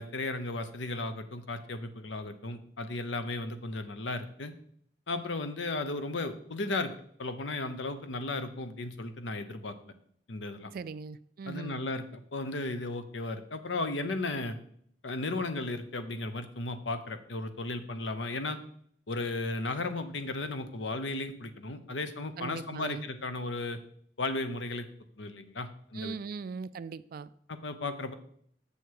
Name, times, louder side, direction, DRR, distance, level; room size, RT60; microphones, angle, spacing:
voice 1, 0.0-4.5 5.1-6.9 7.2-9.9 10.3-10.7 11.5-14.6 15.0-18.6 19.1-23.8 24.2-24.9 25.2-26.2 27.5-28.1, left 2 dB, 90° left, 0.8 m, -35 dB
voice 2, 10.7-11.8 22.4-23.0 25.9-27.3, right 5 dB, 55° right, 0.3 m, -39 dB
7.1 x 6.6 x 4.6 m
head